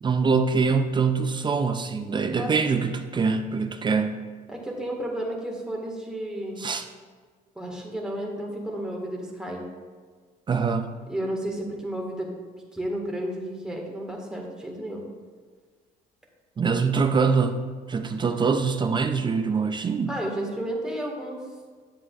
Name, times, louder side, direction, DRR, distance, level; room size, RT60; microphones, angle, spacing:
voice 1, 0.0-4.2 6.6-6.8 10.5-10.9 16.6-20.1, right 5 dB, 25° right, 7 dB, 0.4 m, -24 dB
voice 2, 2.3-2.7 4.5-6.7 7.5-9.6 11.1-12.3 12.7-15.0 20.1-21.4, right 1 dB, 5° right, -1 dB, 1.6 m, -32 dB
10.0 x 7.4 x 2.4 m, 1.5 s
cardioid pair, 110°, 17 cm